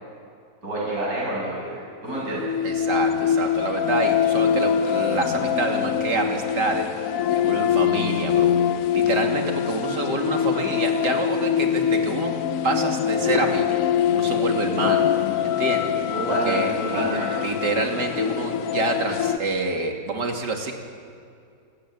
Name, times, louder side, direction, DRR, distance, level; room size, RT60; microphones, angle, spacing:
voice 1, 0.6-2.4 16.1-17.5, right 1 dB, 60° right, -6 dB, 7.3 m, -28 dB
sound 1, 2.2-19.4, left 9 dB, 60° left, 1.0 m, -24 dB
voice 2, 2.6-6.9 7.3-8.5 8.9-12.3 12.6-13.8 14.1-15.0 15.4-17.1 17.4-20.7, right 3 dB, 85° right, 2 dB, 3.2 m, -27 dB
27.0 x 15.0 x 9.7 m, 2.4 s
omnidirectional pair, 1.8 m